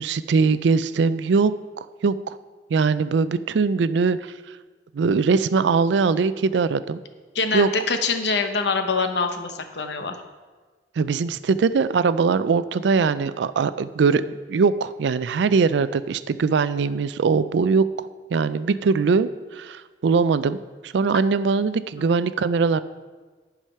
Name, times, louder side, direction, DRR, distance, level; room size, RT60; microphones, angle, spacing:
voice 1, 0.0-1.5 2.0-2.4 2.7-4.3 4.9-7.0 7.5-7.7 11.0-14.2 14.5-17.9 18.3-20.6 20.8-22.8, right 5 dB, 85° right, 14 dB, 0.4 m, -21 dB
voice 2, 7.3-10.2 22.0-22.1, left 4 dB, 75° left, 7 dB, 0.8 m, -24 dB
10.5 x 4.9 x 5.6 m, 1.4 s
head